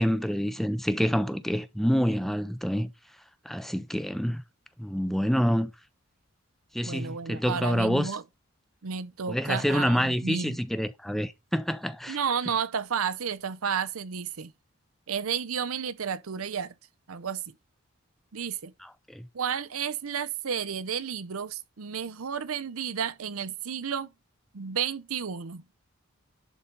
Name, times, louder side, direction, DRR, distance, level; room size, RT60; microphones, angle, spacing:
voice 1, 0.0-2.9 3.5-4.4 4.8-5.7 6.7-8.1 9.3-12.2 18.8-19.3, equal, ahead, 0.5 m, -27 dB
voice 2, 6.8-8.2 8.8-10.6 12.1-14.5 15.1-16.7 17.1-17.5 18.3-18.7 19.3-24.1 24.5-25.6, right 7 dB, 90° right, 0.7 m, -32 dB
11.0 x 4.0 x 5.3 m
head